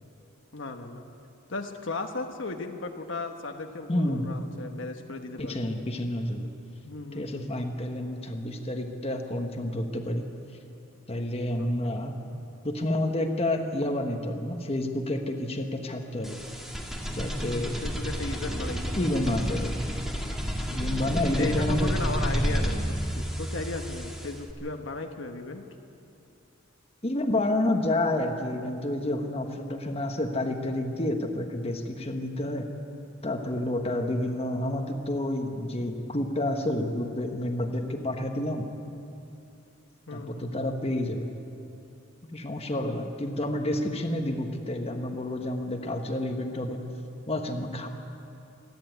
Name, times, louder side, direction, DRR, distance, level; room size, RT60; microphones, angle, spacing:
voice 1, 0.5-1.0 1.5-5.7 6.8-7.6 11.5-11.7 17.5-19.4 21.3-25.7 33.9-34.1 40.1-40.5, left 3 dB, 65° left, 4 dB, 1.2 m, -36 dB
voice 2, 3.9-4.3 5.4-6.5 7.1-10.3 11.1-12.2 12.6-16.4 17.0-17.7 18.9-19.7 20.6-21.9 27.0-32.7 33.2-38.7 40.1-41.3 42.3-46.9 47.3-47.9, left 1 dB, 30° left, 4 dB, 1.3 m, -29 dB
sound 1, 16.2-24.5, equal, ahead, 1.8 m, -30 dB
27.5 x 10.5 x 9.2 m, 2.7 s
head